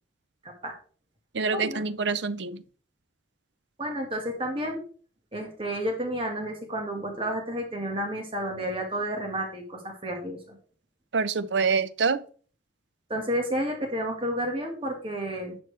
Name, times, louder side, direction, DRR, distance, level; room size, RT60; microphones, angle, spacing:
voice 1, 0.4-0.7 1.5-1.8 3.8-4.8 5.3-10.6 13.1-15.6, equal, 30° right, 1.7 m, -31 dB
voice 2, 1.3-2.6 11.1-12.2, right 5 dB, 70° right, 0.6 m, -26 dB
11.0 x 7.1 x 3.3 m
head